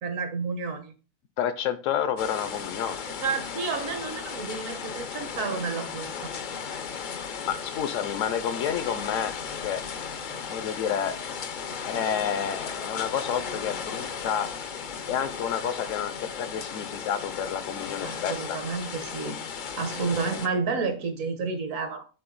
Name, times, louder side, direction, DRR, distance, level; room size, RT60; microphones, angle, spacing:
voice 1, 0.0-0.9 3.0-6.3 10.3-10.4 18.0-19.4 19.7-22.0, right 4 dB, 70° right, 7 dB, 1.4 m, -31 dB
voice 2, 1.4-3.0 5.2-5.3 7.5-9.4 9.6-9.8 10.5-11.2 11.9-14.5 15.1-18.6, left 8 dB, 70° left, 12 dB, 0.9 m, -29 dB
sound 1, 2.2-20.5, left 6 dB, 55° left, 0.5 m, -36 dB
6.7 x 3.7 x 3.8 m, 0.35 s
omnidirectional pair, 1.5 m